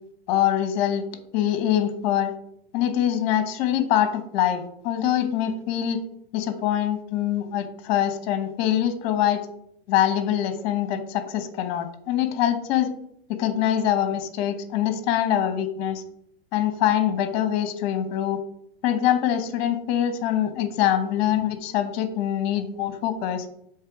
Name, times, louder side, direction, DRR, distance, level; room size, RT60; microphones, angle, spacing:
voice 1, 0.3-1.0 1.3-2.3 2.7-6.0 6.3-9.4 9.9-12.9 13.3-16.0 16.5-18.4 18.8-23.4, left 11 dB, 45° left, 10 dB, 1.0 m, -24 dB
7.3 x 3.3 x 4.7 m, 0.71 s
hypercardioid pair, 125°, 31 cm